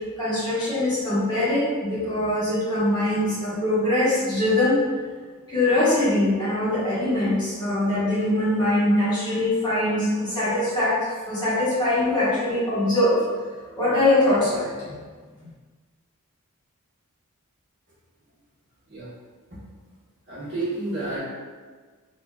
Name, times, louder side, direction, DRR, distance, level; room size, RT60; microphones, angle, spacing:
voice 1, 0.2-4.8 5.5-13.2 13.8-14.9, left 1 dB, 20° left, -12 dB, 1.3 m, -22 dB
voice 2, 20.3-21.2, right 2 dB, 55° right, -10 dB, 1.5 m, -29 dB
3.9 x 3.0 x 2.4 m, 1.5 s
head